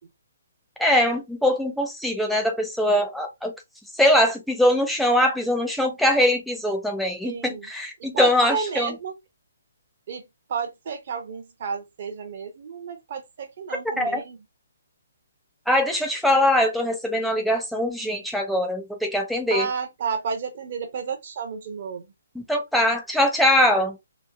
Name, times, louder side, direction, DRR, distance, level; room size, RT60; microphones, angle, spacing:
voice 1, 0.8-3.5 4.0-8.9 14.0-14.2 15.7-19.7 22.3-24.0, left 1 dB, ahead, 0.6 m, -22 dB
voice 2, 7.2-7.7 8.0-9.1 10.1-14.4 19.5-22.1, right 6 dB, 50° right, 0.7 m, -31 dB
3.0 x 2.1 x 2.4 m
hypercardioid pair, 145°, 0 cm